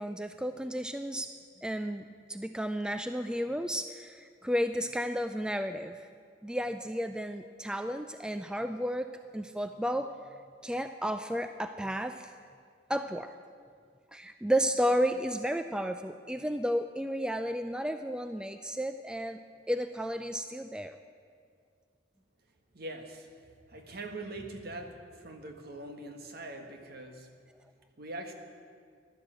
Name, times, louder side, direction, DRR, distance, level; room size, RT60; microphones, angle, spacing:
voice 1, 0.0-1.3 1.6-6.0 6.4-10.1 10.6-12.3 12.9-13.3 14.1-19.4 19.7-21.0, equal, 5° right, 8 dB, 0.4 m, -32 dB
voice 2, 22.7-23.3 23.7-27.3 28.0-28.3, right 2 dB, 55° right, 4 dB, 1.6 m, -42 dB
15.0 x 11.5 x 7.7 m, 2.1 s
head